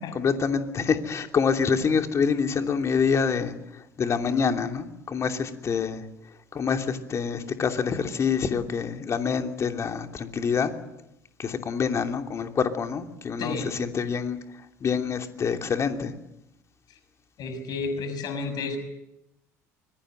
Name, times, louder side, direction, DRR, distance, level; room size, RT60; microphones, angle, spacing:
voice 1, 0.1-3.5 4.0-6.0 6.5-10.7 11.4-14.4 14.8-16.1, left 6 dB, 35° left, 5 dB, 2.9 m, -26 dB
voice 2, 13.4-13.7 17.4-18.8, left 4 dB, 50° left, 8 dB, 6.3 m, -31 dB
25.0 x 22.5 x 7.9 m, 0.85 s
figure-of-eight pair, 65°, 9 cm